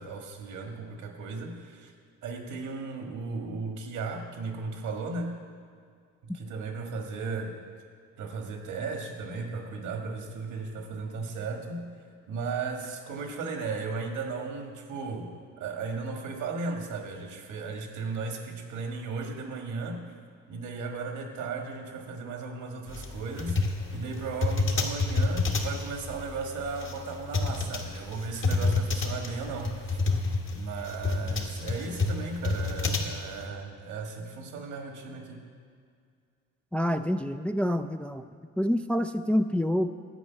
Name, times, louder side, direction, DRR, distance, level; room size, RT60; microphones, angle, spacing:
voice 1, 0.0-1.9 2.2-5.4 6.2-7.5 8.2-20.0 20.5-23.6 23.9-30.0 30.5-35.4, right 4 dB, 85° right, 3 dB, 1.6 m, -36 dB
sound 1, 22.9-33.4, left 3 dB, 40° left, 1.4 m, -29 dB
voice 2, 36.7-38.2 38.6-39.9, equal, 5° left, 8 dB, 0.3 m, -27 dB
11.0 x 5.3 x 8.1 m, 2.1 s
cardioid pair, 90°, 30 cm